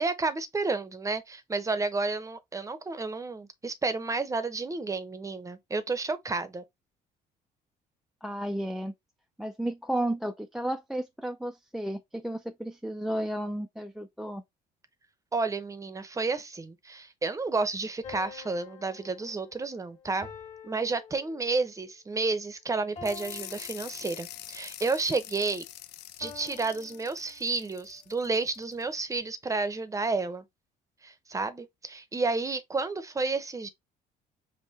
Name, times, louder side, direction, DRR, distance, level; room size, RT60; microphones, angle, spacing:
voice 1, 0.0-6.6 15.3-20.3 20.6-25.6 26.2-30.4 31.0-33.7, right 3 dB, 20° right, 0.7 m, -31 dB
voice 2, 8.2-8.9 9.4-14.4, right 1 dB, 5° right, 0.3 m, -33 dB
sound 1, 18.0-21.8 23.0-24.5 26.2-27.8, left 6 dB, 45° left, 1.8 m, -48 dB
sound 2, 23.0-28.8, left 14 dB, 80° left, 0.5 m, -45 dB
5.5 x 2.1 x 4.0 m
cardioid pair, 110°, 17 cm